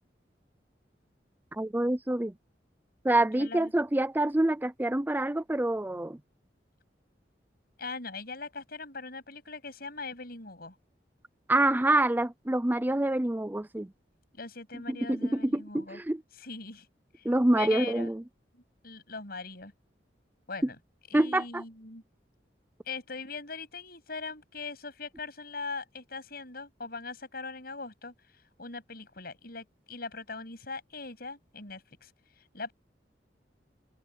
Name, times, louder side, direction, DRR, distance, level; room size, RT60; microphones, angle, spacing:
voice 1, 1.5-2.3 3.0-6.2 11.5-13.9 14.9-16.2 17.2-18.2 21.1-21.6, right 1 dB, 10° right, 0.5 m, -26 dB
voice 2, 3.3-3.7 7.8-10.8 14.3-16.0 16.3-16.9 17.2-17.3 17.5-18.1 18.5-19.7 20.5-20.8 21.1-22.0 22.9-32.7, left 4 dB, 60° left, 7.9 m, -41 dB
open air
head